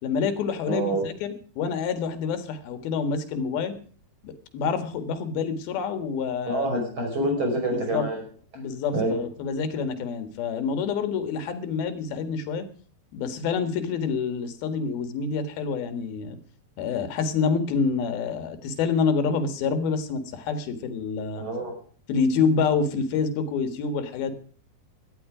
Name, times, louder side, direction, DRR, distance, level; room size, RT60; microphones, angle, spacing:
voice 1, 0.0-3.7 4.2-6.7 7.9-8.1 8.6-12.7 13.1-16.4 16.8-21.4 22.1-24.3, left 5 dB, 80° left, 9 dB, 3.5 m, -27 dB
voice 2, 0.6-1.1 6.5-8.2 8.9-9.2 21.4-21.8, right 1 dB, 30° right, 2 dB, 6.2 m, -26 dB
17.5 x 12.5 x 4.9 m, 0.43 s
omnidirectional pair, 4.3 m